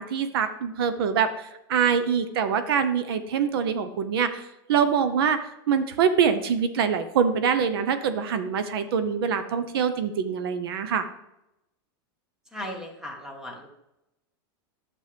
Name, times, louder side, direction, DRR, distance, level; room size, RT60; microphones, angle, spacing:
voice 1, 0.0-11.0, right 7 dB, 80° right, 10 dB, 0.9 m, -24 dB
voice 2, 12.5-13.7, equal, 5° right, 2 dB, 1.4 m, -37 dB
10.5 x 7.3 x 3.4 m, 0.89 s
supercardioid pair, 155°, 12 cm